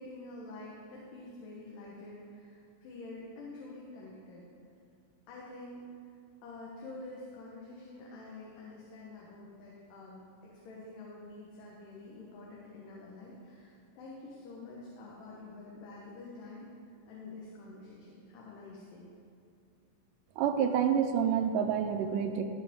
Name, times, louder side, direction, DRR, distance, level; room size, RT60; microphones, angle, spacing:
voice 1, 0.0-4.5 5.3-5.9 6.4-16.7 17.1-19.1, left 2 dB, 75° left, -4 dB, 2.7 m, -47 dB
voice 2, 20.4-22.4, right 8 dB, 80° right, 6 dB, 2.1 m, -28 dB
16.5 x 6.1 x 3.6 m, 2.4 s
omnidirectional pair, 4.0 m